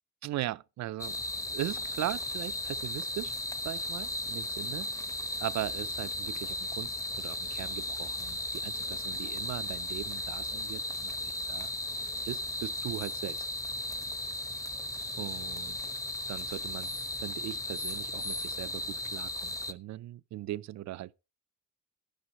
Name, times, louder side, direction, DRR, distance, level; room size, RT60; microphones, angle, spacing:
voice 1, 0.2-3.3 3.6-4.9 5.4-6.9 7.2-11.7 12.2-13.5 15.2-15.8 16.3-21.1, right 14 dB, 65° right, 0.5 m, -39 dB
sound 1, 1.0-19.7, left 1 dB, 10° left, 0.8 m, -36 dB
11.5 x 10.5 x 3.0 m
cardioid pair, 90°, 30 cm